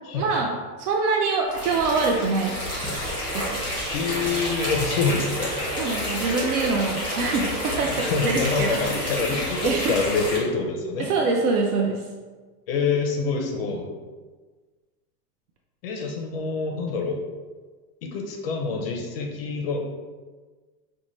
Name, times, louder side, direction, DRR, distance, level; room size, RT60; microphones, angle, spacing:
voice 1, 0.1-2.6 3.3-3.6 5.8-9.1 9.6-9.9 11.0-12.1, right 4 dB, 80° right, 1 dB, 0.6 m, -25 dB
sound 1, 1.5-10.4, equal, 10° right, 0.6 m, -29 dB
voice 2, 3.9-5.6 8.0-11.1 12.7-13.9 15.8-17.2 18.0-19.8, left 4 dB, 40° left, 1 dB, 0.4 m, -26 dB
5.3 x 2.2 x 3.0 m, 1.4 s
supercardioid pair, 175°, 46 cm